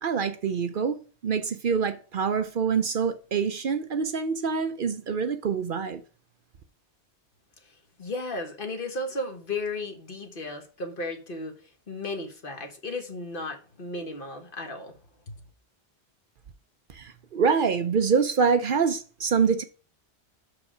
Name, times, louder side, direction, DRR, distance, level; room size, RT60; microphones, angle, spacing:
voice 1, 0.0-6.0 16.9-19.6, right 6 dB, 60° right, 0.8 m, -25 dB
voice 2, 7.6-15.0 15.3-15.4, left 2 dB, 55° left, 1.5 m, -35 dB
6.2 x 4.8 x 4.9 m
omnidirectional pair, 1.1 m